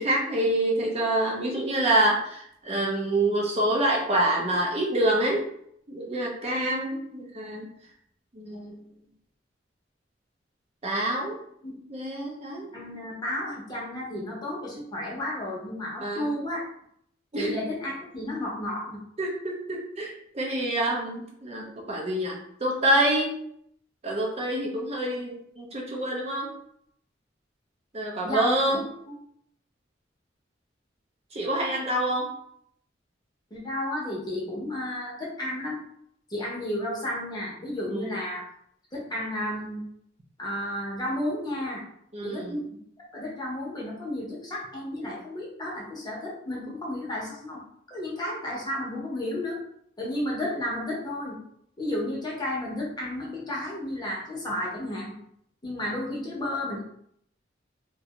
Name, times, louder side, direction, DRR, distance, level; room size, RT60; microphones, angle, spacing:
voice 1, 0.0-5.5 5.9-7.7 8.3-8.8 10.8-11.4 11.9-12.7 16.0-16.3 17.3-17.6 19.2-23.3 24.0-26.5 27.9-28.9 31.3-32.3 37.9-38.2 42.1-42.6, right 1 dB, 35° right, -1 dB, 0.5 m, -27 dB
voice 2, 12.7-16.6 17.3-19.0 28.2-28.8 29.1-29.2 33.5-35.8 36.3-38.4 38.9-39.8 40.4-41.8 42.2-42.8 43.1-47.6 47.9-49.6 50.0-51.4 51.8-55.1 55.6-56.8, left 1 dB, 20° left, -4 dB, 0.7 m, -32 dB
2.5 x 2.2 x 2.9 m, 0.70 s
head